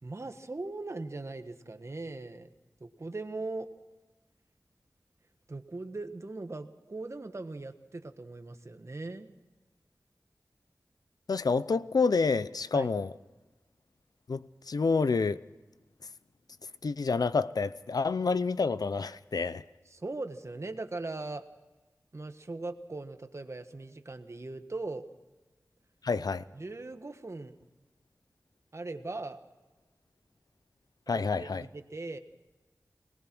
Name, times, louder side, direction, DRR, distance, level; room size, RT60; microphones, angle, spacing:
voice 1, 0.0-2.5 2.8-3.7 5.5-9.3 11.6-11.7 12.7-12.9 19.8-21.4 22.1-25.1 26.2-26.3 26.5-27.6 28.7-29.4 31.1-32.2, right 2 dB, 50° right, 8 dB, 1.4 m, -39 dB
voice 2, 11.3-13.1 14.3-15.4 16.8-19.6 26.0-26.4 31.1-31.6, left 4 dB, 80° left, 16 dB, 0.6 m, -28 dB
21.5 x 19.5 x 6.1 m, 1.1 s
wide cardioid pair, 80°, 6 cm